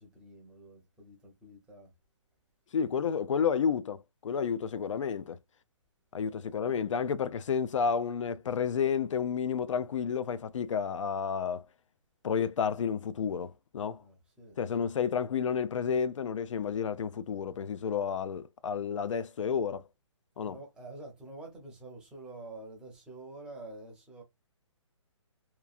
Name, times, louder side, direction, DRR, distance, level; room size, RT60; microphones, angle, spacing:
voice 1, 0.0-1.9 13.9-14.6 20.4-24.2, right 2 dB, 5° right, 0.6 m, -48 dB
voice 2, 2.7-5.4 6.1-11.7 12.2-14.0 14.6-19.8 20.4-20.6, left 7 dB, 75° left, 0.4 m, -31 dB
3.0 x 2.3 x 2.4 m
hypercardioid pair, 160°, 16 cm